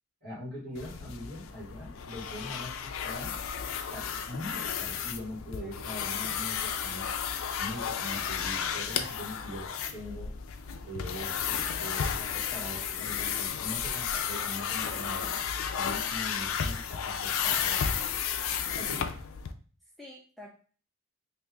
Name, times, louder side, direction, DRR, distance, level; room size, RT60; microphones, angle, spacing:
voice 1, 0.2-3.3 3.9-7.1 7.6-10.3 10.8-15.3 15.7-18.0 18.7-19.0, left 1 dB, 50° right, -5 dB, 1.4 m, -42 dB
sound 1, 0.8-19.5, left 7 dB, 65° left, 0.4 m, -33 dB
voice 2, 5.6-5.9 15.1-15.4 20.0-20.5, left 1 dB, ahead, -3 dB, 0.4 m, -49 dB
3.3 x 2.6 x 3.6 m, 0.41 s
head